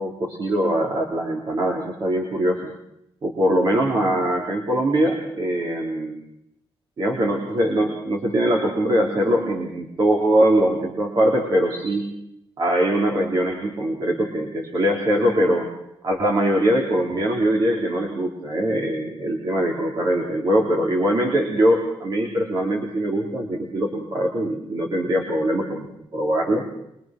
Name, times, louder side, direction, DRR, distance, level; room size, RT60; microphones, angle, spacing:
voice 1, 0.0-2.7 3.2-6.2 7.0-12.1 12.6-15.7 16.0-25.9 26.1-26.7, right 1 dB, 45° right, 0 dB, 3.7 m, -22 dB
24.5 x 23.0 x 6.1 m, 0.79 s
wide cardioid pair, 175°, 10 cm